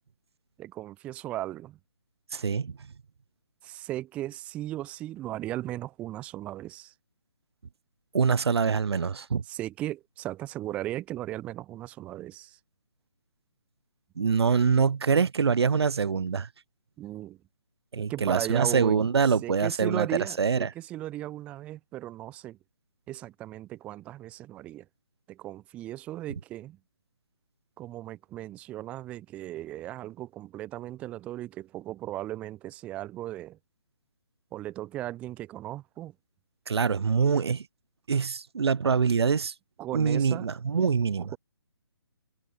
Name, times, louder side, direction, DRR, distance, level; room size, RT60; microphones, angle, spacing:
voice 1, 0.6-1.8 3.6-6.9 9.5-12.6 17.0-17.4 18.1-19.0 19.4-22.6 23.1-24.8 25.3-26.8 27.8-33.6 34.5-36.1 39.8-40.5 41.2-41.4, right 14 dB, 10° right, 0.8 m, -37 dB
voice 2, 2.3-2.8 8.1-9.4 14.2-16.5 17.9-20.1 20.4-20.7 36.7-37.7 38.1-39.5 39.9-41.3, right 6 dB, 75° right, 0.8 m, -24 dB
hypercardioid pair, 165°, 14 cm